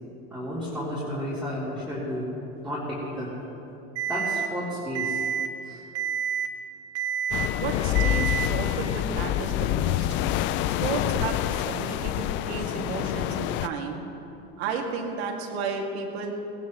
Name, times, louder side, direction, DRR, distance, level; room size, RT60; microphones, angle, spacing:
voice 1, 0.3-2.3 2.6-3.3 4.1-5.2 5.6-5.8 11.8-11.9, equal, ahead, -10 dB, 3.6 m, -32 dB
Alarm, 4.0-4.5 5.0-5.5 6.0-6.5 7.0-7.5 8.0-8.5, right 8 dB, 45° right, 1.8 m, -28 dB
sound 1, 7.3-13.7, left 12 dB, 40° left, 0.4 m, -27 dB
voice 2, 7.6-10.1 10.8-14.0 14.6-16.3, right 5 dB, 85° right, 1 dB, 2.6 m, -33 dB
19.0 x 18.0 x 3.2 m, 3.0 s
supercardioid pair, 140°, 31 cm